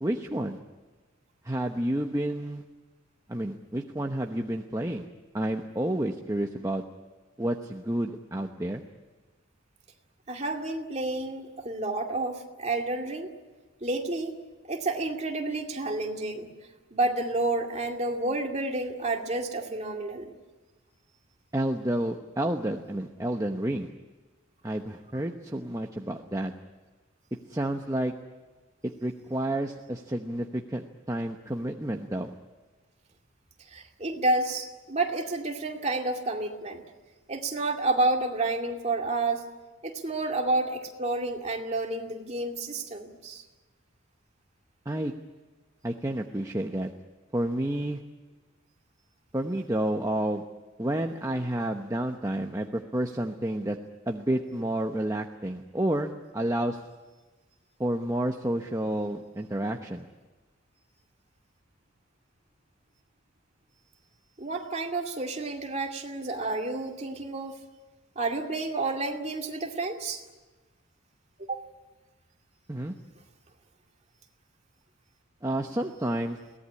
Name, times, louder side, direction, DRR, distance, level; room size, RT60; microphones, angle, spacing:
voice 1, 0.0-0.6 1.4-2.6 3.3-5.0 5.3-6.8 7.4-8.8 21.5-23.9 24.6-26.5 27.5-28.1 29.0-32.3 44.9-45.1 45.8-46.9 47.3-48.0 49.3-50.4 50.8-53.8 54.1-56.8 57.8-60.1 72.7-72.9 75.4-76.4, right 1 dB, 15° right, 3 dB, 0.9 m, -30 dB
voice 2, 10.3-13.3 13.8-14.3 14.7-16.5 16.9-20.3 33.7-36.8 37.3-39.4 39.8-43.4 64.4-67.6 68.2-70.2 71.5-71.6, right 2 dB, 30° right, 2 dB, 2.3 m, -30 dB
22.5 x 18.0 x 9.7 m, 1.2 s
head